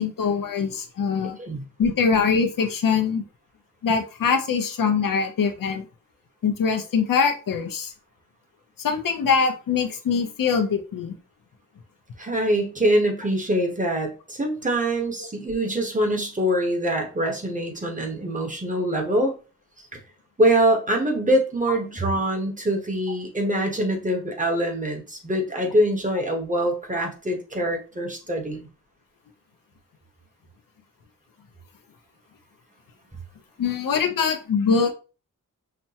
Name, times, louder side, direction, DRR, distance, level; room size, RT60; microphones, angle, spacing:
voice 1, 0.0-1.4 1.8-3.2 3.8-5.9 6.4-7.9 8.8-11.2 33.6-34.9, left 5 dB, 90° left, 6 dB, 0.7 m, -23 dB
voice 2, 12.2-19.3 19.8-19.9 20.4-28.7, right 1 dB, 25° right, 2 dB, 1.1 m, -24 dB
5.9 x 2.1 x 2.8 m, 0.34 s
wide cardioid pair, 100°, 32 cm